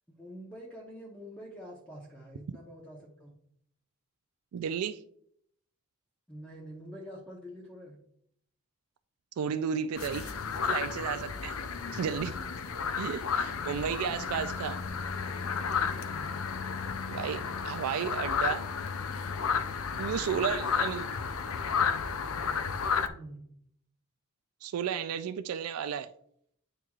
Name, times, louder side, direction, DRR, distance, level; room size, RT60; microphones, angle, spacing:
voice 1, 0.2-3.3 6.3-8.0 13.5-14.3 16.0-16.3 20.4-20.9 23.1-23.5, equal, 5° left, 0.9 m, -46 dB
voice 2, 4.5-5.0 9.4-10.3 10.7-11.6 11.9-12.4 13.0-14.8 17.1-18.7 20.0-21.0 24.6-26.1, right 7 dB, 85° right, 0.3 m, -33 dB
sound 1, 10.0-23.1, left 6 dB, 75° left, 0.5 m, -32 dB
9.0 x 4.5 x 2.4 m
head